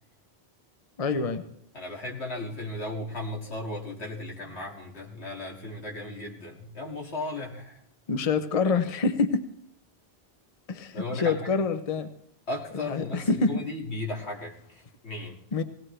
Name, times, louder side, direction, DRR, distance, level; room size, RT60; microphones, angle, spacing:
voice 1, 1.0-1.4 8.1-9.4 10.7-12.1 12.7-13.6 15.5-15.6, left 4 dB, 40° left, 9 dB, 0.8 m, -26 dB
voice 2, 1.7-7.8 10.9-11.5 12.5-14.6 15.0-15.4, left 2 dB, 85° left, 0 dB, 2.6 m, -35 dB
19.5 x 17.5 x 3.3 m, 0.68 s
omnidirectional pair, 1.1 m